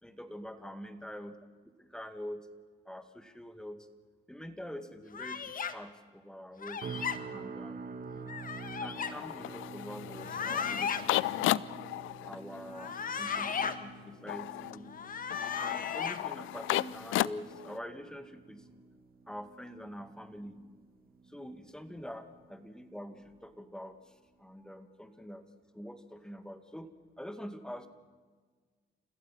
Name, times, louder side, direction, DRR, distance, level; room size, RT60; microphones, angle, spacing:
voice 1, 0.0-1.4 1.8-2.5 2.9-3.9 4.3-7.8 8.6-11.7 12.3-14.9 15.5-18.6 19.3-20.5 21.3-24.0 24.4-25.5 25.7-27.9, equal, 5° left, 8 dB, 2.1 m, -45 dB
sound 1, 5.1-5.7 6.6-7.2 8.3-9.1 10.1-11.0 12.7-13.7 14.9-16.2, left 6 dB, 45° left, 1.6 m, -35 dB
sound 2, 6.8-22.0 22.4-22.8 23.2-23.4, right 4 dB, 50° right, 2.0 m, -48 dB
sound 3, 9.0-17.8, left 16 dB, 85° left, 0.5 m, -35 dB
29.5 x 16.0 x 5.8 m, 1.5 s
cardioid pair, 90°, 20 cm